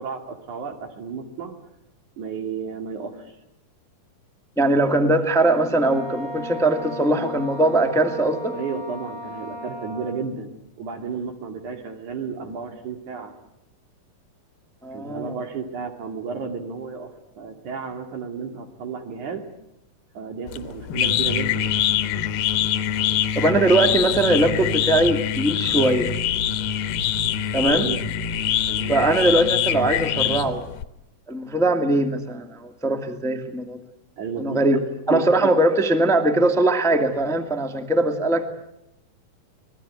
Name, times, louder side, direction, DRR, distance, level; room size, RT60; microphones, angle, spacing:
voice 1, 0.0-1.6 2.2-3.4 8.5-13.3 14.9-17.1 17.4-19.5 20.2-21.7 27.6-28.0 28.7-29.0 34.2-35.5, right 5 dB, 60° right, 4 dB, 3.6 m, -32 dB
voice 2, 4.6-8.6 14.8-15.4 23.3-26.1 27.5-27.9 28.9-30.6 31.3-33.8 34.4-34.8 35.1-38.5, right 2 dB, ahead, 6 dB, 1.1 m, -21 dB
Wind instrument woodwind instrument, 5.7-10.3, equal, 75° right, 6.4 m, -36 dB
sound 1, 20.5-30.8, left 9 dB, 80° left, 2.9 m, -24 dB
26.0 x 19.5 x 9.6 m, 0.82 s
omnidirectional pair, 4.1 m